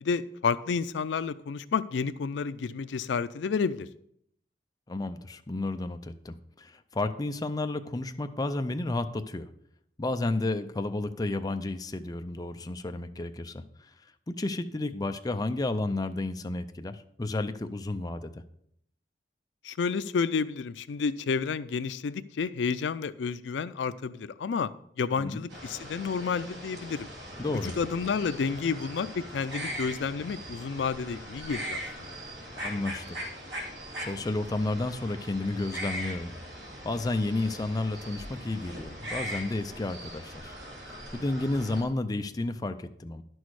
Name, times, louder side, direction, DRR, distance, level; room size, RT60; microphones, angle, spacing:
voice 1, 0.0-3.9 19.6-24.7 25.0-27.1 27.6-32.2, left 5 dB, 80° left, 14 dB, 0.4 m, -30 dB
voice 2, 4.9-9.5 10.0-13.9 14.3-18.4 25.2-25.4 27.4-27.8 32.6-33.2 34.0-36.3 36.8-40.6 40.8-43.2, left 2 dB, 20° left, 7 dB, 0.5 m, -32 dB
sound 1, 25.5-41.8, equal, 80° right, 2.6 m, -40 dB
10.5 x 6.2 x 4.7 m, 0.71 s
head